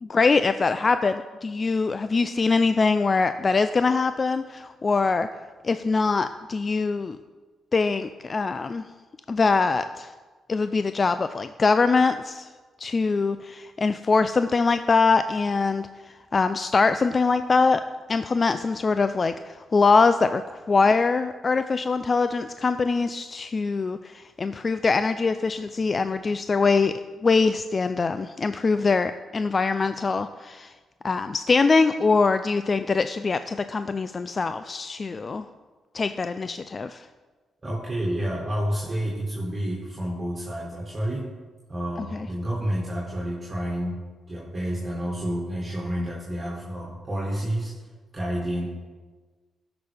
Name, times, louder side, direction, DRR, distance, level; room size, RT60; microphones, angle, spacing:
voice 1, 0.0-5.3 5.6-7.2 7.7-8.8 9.3-10.1 10.5-12.5 12.8-15.9 16.3-17.8 18.1-26.9 27.2-30.7 31.0-35.5 35.9-37.1 42.0-42.3, left 4 dB, 40° left, 11 dB, 0.3 m, -23 dB
voice 2, 37.6-41.2 41.7-44.0 44.3-47.7 48.1-48.7, equal, 35° right, -5 dB, 2.1 m, -29 dB
13.5 x 6.0 x 3.4 m, 1.4 s
supercardioid pair, 60°, 0 cm